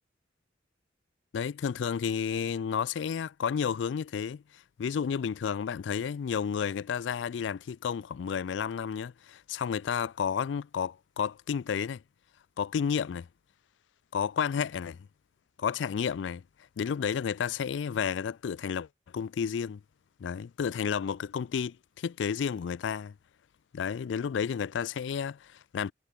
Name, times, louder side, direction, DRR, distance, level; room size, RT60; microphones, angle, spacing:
voice 1, 1.3-12.0 12.6-13.3 14.1-15.0 15.6-16.4 16.8-18.9 19.1-19.8 20.2-23.1 23.7-25.9, left 7 dB, 85° left, 0.4 m, -31 dB
head